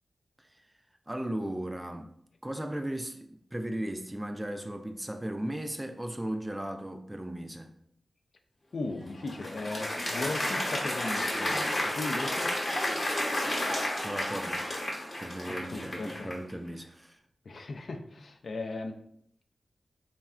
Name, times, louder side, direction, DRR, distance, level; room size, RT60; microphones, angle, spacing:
voice 1, 1.1-2.1 2.4-7.7 14.0-14.7 15.2-17.2, right 1 dB, 15° right, 0.3 m, -36 dB
voice 2, 8.7-11.5 11.8-12.5 15.4-16.3 17.5-19.0, left 3 dB, 70° left, 0.3 m, -37 dB
Applause, 8.9-16.5, left 1 dB, 50° left, 0.9 m, -32 dB
3.4 x 2.1 x 2.3 m
cardioid pair, 60°, 0 cm